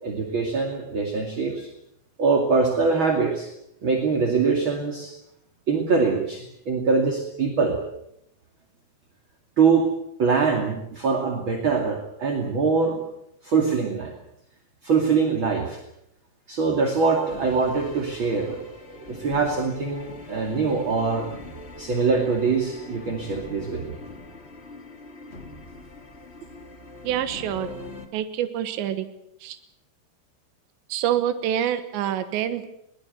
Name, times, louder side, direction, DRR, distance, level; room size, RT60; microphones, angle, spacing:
voice 1, 0.0-1.7 2.2-3.5 3.8-5.1 5.7-7.8 9.6-9.9 10.2-13.0 13.4-14.1 14.8-15.8 16.5-18.6 18.9-21.3 21.8-24.0, right 4 dB, 35° right, 2 dB, 2.4 m, -23 dB
sound 1, 16.8-28.1, left 2 dB, 55° left, 0.6 m, -41 dB
voice 2, 27.1-27.7 28.1-29.1 29.4-29.6 30.9-32.7, right 10 dB, 85° right, 10 dB, 3.5 m, -26 dB
22.0 x 19.5 x 8.0 m, 0.79 s
omnidirectional pair, 5.0 m